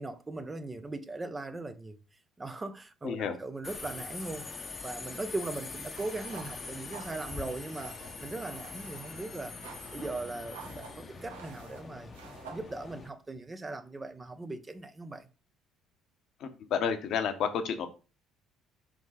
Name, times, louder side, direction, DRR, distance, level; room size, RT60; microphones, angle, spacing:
voice 1, 0.0-2.0 2.4-4.5 4.8-7.9 8.2-9.5 9.9-12.1 12.5-15.3, right 2 dB, 20° right, 1.0 m, -39 dB
voice 2, 3.0-3.4 16.4-17.9, left 7 dB, 60° left, 1.1 m, -31 dB
Subway metro underground, 3.6-13.1, left 4 dB, 35° left, 1.0 m, -43 dB
sound 1, 6.0-13.1, right 5 dB, 85° right, 1.2 m, -51 dB
5.3 x 3.8 x 4.9 m
hypercardioid pair, 60°, 0 cm